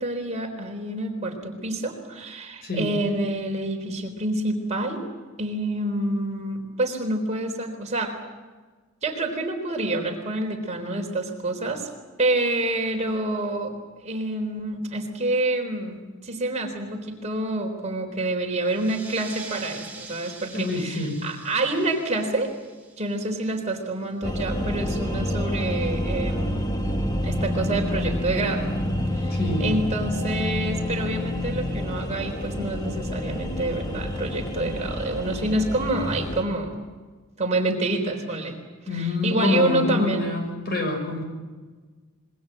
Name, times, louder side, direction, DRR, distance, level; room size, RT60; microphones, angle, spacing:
voice 1, 0.0-5.1 5.4-8.2 9.0-11.9 12.2-13.7 14.0-22.5 23.0-26.8 27.2-28.6 29.1-36.7 37.4-38.6 38.9-40.3, right 2 dB, 35° right, 3 dB, 4.0 m, -27 dB
voice 2, 2.6-2.9 20.5-21.2 29.3-29.7 38.9-41.2, left 3 dB, 50° left, 4 dB, 6.8 m, -26 dB
sound 1, 18.6-23.8, right 4 dB, 5° right, 5.2 m, -44 dB
sound 2, 24.2-36.4, left 1 dB, 20° left, 1.9 m, -28 dB
26.5 x 23.0 x 7.7 m, 1.4 s
head